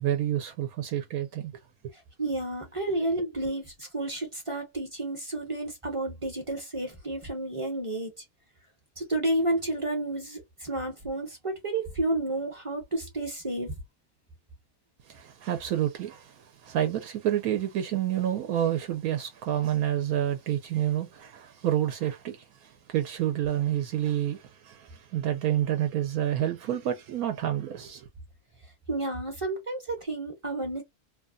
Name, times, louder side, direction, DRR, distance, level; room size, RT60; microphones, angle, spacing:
voice 1, 0.0-1.5 15.1-28.1, right 11 dB, 80° right, 1.1 m, -29 dB
voice 2, 1.9-8.1 9.0-13.7 28.9-30.8, right 2 dB, 25° right, 0.8 m, -31 dB
3.0 x 2.3 x 2.4 m
omnidirectional pair, 1.6 m